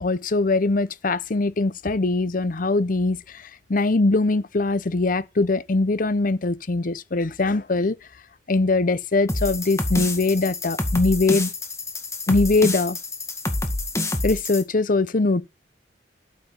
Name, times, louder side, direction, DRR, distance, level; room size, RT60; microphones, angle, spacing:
voice 1, 0.0-3.2 3.7-7.9 8.5-11.5 12.3-13.0 14.2-15.4, left 3 dB, 45° left, 0.7 m, -22 dB
sound 1, 9.3-14.6, left 2 dB, 15° left, 1.9 m, -28 dB
12.5 x 7.4 x 5.9 m
head